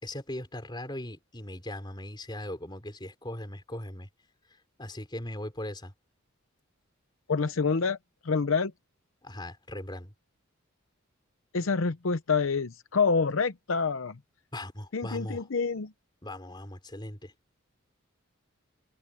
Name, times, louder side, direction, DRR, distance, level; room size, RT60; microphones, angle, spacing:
voice 1, 0.0-4.1 4.5-5.9 9.2-10.1 14.5-15.5 16.2-17.3, left 1 dB, 20° left, 4.1 m, -39 dB
voice 2, 7.3-8.0 8.2-8.7 11.5-14.2 14.9-15.9, left 5 dB, 65° left, 0.7 m, -27 dB
head